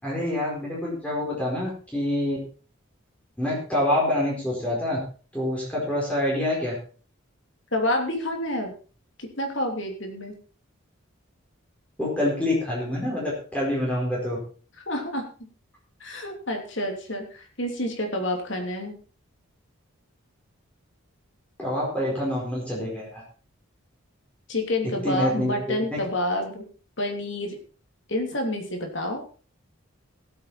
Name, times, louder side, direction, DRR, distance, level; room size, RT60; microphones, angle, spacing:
voice 1, 0.0-2.4 3.4-5.0 5.3-6.7 12.0-14.4 21.6-23.2 25.0-25.7, left 1 dB, 5° left, -4 dB, 4.6 m, -26 dB
voice 2, 7.7-8.7 9.2-10.3 14.9-15.2 16.0-19.0 24.5-26.6 27.0-27.6 28.1-29.2, left 1 dB, 60° left, 3 dB, 3.1 m, -28 dB
17.5 x 8.4 x 4.3 m, 0.39 s
head